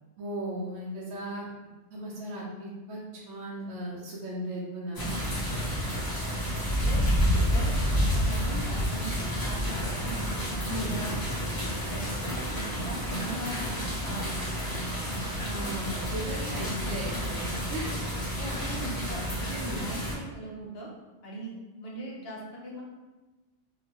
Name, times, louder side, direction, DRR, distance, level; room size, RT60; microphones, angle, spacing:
voice 1, 0.2-1.5 1.9-5.1 10.6-11.0 15.4-17.9 19.5-19.9, right 1 dB, 75° right, -5 dB, 0.9 m, -36 dB
sound 1, 4.9-20.1, equal, 25° left, 0.5 m, -30 dB
voice 2, 6.6-10.3 10.9-11.2 11.6-13.7 14.0-14.5 18.4-19.2 19.8-20.9 21.2-22.8, right 1 dB, 60° left, -3 dB, 0.8 m, -40 dB
2.9 x 2.1 x 2.9 m, 1.1 s
omnidirectional pair, 1.2 m